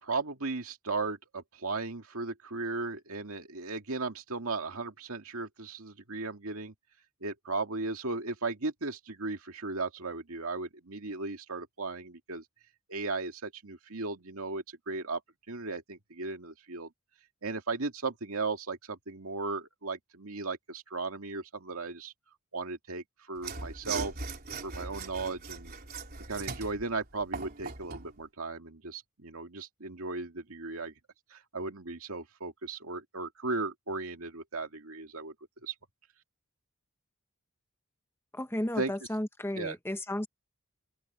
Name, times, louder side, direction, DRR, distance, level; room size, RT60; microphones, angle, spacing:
voice 1, 0.0-6.7 7.2-12.4 12.9-15.2 15.5-16.9 17.4-22.1 22.5-24.1 24.6-25.7 26.3-30.9 31.3-35.3 35.6-35.7 38.8-38.9 39.6-39.7, right 3 dB, 75° right, 2.3 m, -36 dB
Mechanisms / Sawing, 23.4-28.1, right 4 dB, 45° right, 3.7 m, -39 dB
voice 2, 38.3-40.3, left 1 dB, 10° left, 1.1 m, -33 dB
open air
head